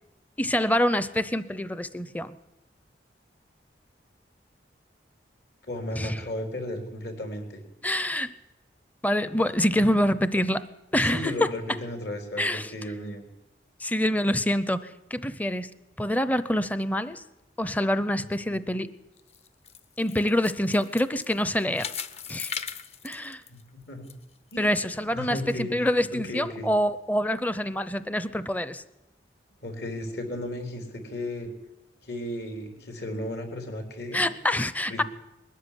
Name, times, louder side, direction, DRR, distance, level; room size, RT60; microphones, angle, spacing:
voice 1, 0.4-2.4 6.0-6.2 7.8-8.3 9.0-11.5 12.4-12.7 13.8-15.7 16.0-17.2 17.6-18.9 20.0-21.9 22.3-22.6 23.0-23.4 24.6-28.8 34.1-35.0, left 1 dB, 10° left, 14 dB, 0.6 m, -26 dB
voice 2, 5.6-7.6 9.7-9.9 11.1-13.2 18.5-18.6 23.5-24.1 24.5-24.7 25.0-26.7 29.6-31.5 32.0-34.2 34.9-35.0, left 1 dB, 65° left, 4 dB, 3.9 m, -35 dB
sound 1, 19.2-24.1 24.5-24.6 25.2-25.3, left 7 dB, 35° left, 0.8 m, -38 dB
21.0 x 13.0 x 10.0 m, 0.99 s
head